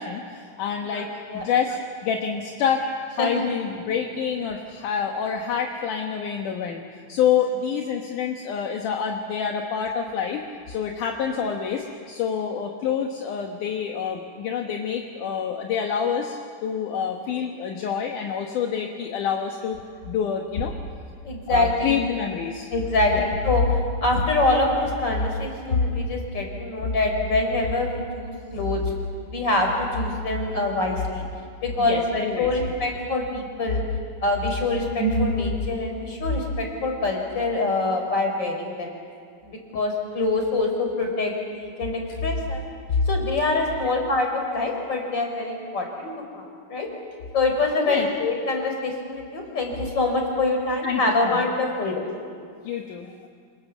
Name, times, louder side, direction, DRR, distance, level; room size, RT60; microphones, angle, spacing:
voice 1, 0.0-2.8 3.1-10.4 10.7-19.8 20.1-20.7 21.5-22.7 23.1-23.3 31.8-32.7 43.8-43.9 47.9-48.1 50.8-51.5 51.9-52.0 52.6-53.1, left 7 dB, 70° left, 2 dB, 2.7 m, -27 dB
voice 2, 0.9-1.5 3.2-3.4 21.2-22.0 22.7-23.7 24.0-28.8 29.3-31.2 31.6-33.8 34.2-38.9 39.4-42.6 43.1-46.9 47.3-52.1, left 2 dB, 30° left, 2 dB, 4.8 m, -24 dB
27.0 x 26.5 x 7.3 m, 2.1 s
omnidirectional pair, 4.0 m